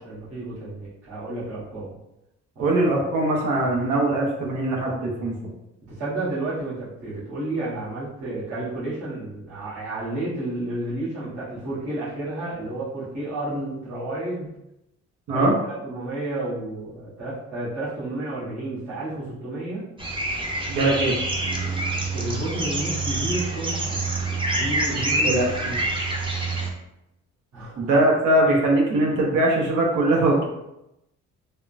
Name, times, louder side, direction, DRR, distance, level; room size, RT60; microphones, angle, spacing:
voice 1, 0.0-2.0 2.5-2.7 5.9-14.5 15.3-19.9 22.1-24.0 24.5-25.4 27.5-27.9, right 1 dB, 65° right, -9 dB, 1.5 m, -31 dB
voice 2, 2.6-5.4 15.3-15.5 20.7-21.1 24.9-25.8 27.8-30.4, right 1 dB, 85° right, -2 dB, 0.8 m, -21 dB
sound 1, 20.0-26.7, right 2 dB, 15° right, 0.6 m, -26 dB
3.5 x 2.2 x 2.5 m, 0.87 s
cardioid pair, 90°, 30 cm